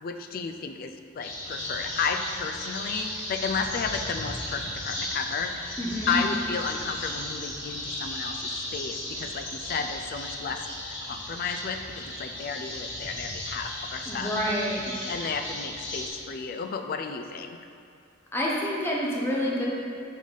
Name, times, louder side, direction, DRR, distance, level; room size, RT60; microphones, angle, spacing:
voice 1, 0.0-5.8 6.1-8.4 8.7-10.7 11.0-14.3 15.1-17.6, left 5 dB, 50° left, 6 dB, 0.3 m, -32 dB
sound 1, 1.2-16.1, left 1 dB, 65° left, 1.2 m, -35 dB
voice 2, 5.8-6.2 14.1-15.0 18.3-19.6, equal, 10° left, -4 dB, 0.8 m, -28 dB
5.4 x 4.9 x 4.0 m, 2.5 s
head